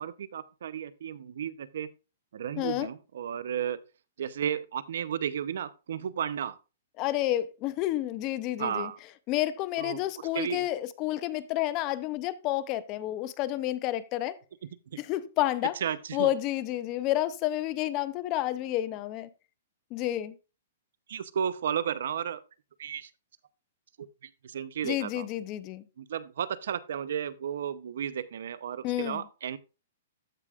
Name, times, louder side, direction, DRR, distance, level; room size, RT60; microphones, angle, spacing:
voice 1, 0.0-1.9 2.3-3.8 4.2-6.6 8.6-9.0 9.8-10.0 10.3-10.7 14.9-15.0 15.8-16.3 21.1-22.4 22.8-23.1 24.0-25.3 26.0-29.6, right 8 dB, 70° right, 0.6 m, -33 dB
voice 2, 2.6-2.9 7.0-8.9 9.3-14.4 15.0-15.8 16.1-19.3 19.9-20.3 24.8-25.8 28.8-29.2, left 14 dB, 30° left, 0.6 m, -30 dB
14.5 x 4.8 x 2.4 m
hypercardioid pair, 150°, 0 cm